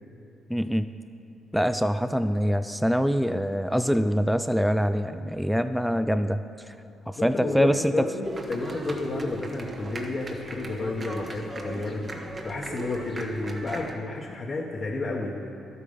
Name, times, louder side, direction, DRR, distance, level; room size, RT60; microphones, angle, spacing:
voice 1, 0.5-0.9 1.5-6.4 7.1-8.1, equal, ahead, 10 dB, 0.4 m, -24 dB
voice 2, 7.2-15.4, left 2 dB, 40° left, -3 dB, 1.2 m, -31 dB
sound 1, 8.2-13.9, right 2 dB, 30° right, 1.3 m, -38 dB
12.0 x 8.4 x 5.5 m, 3.0 s
cardioid pair, 90°, 0 cm